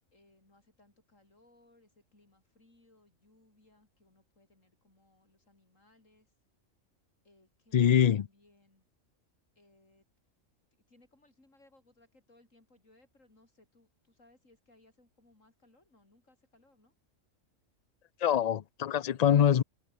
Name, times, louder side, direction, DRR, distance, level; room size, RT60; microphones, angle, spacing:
voice 1, 0.1-6.3 7.2-8.9 9.6-10.0 10.9-16.9, left 2 dB, 80° left, 6.6 m, -65 dB
voice 2, 7.7-8.3 18.2-19.6, left 9 dB, 60° left, 0.4 m, -24 dB
omnidirectional pair, 1.3 m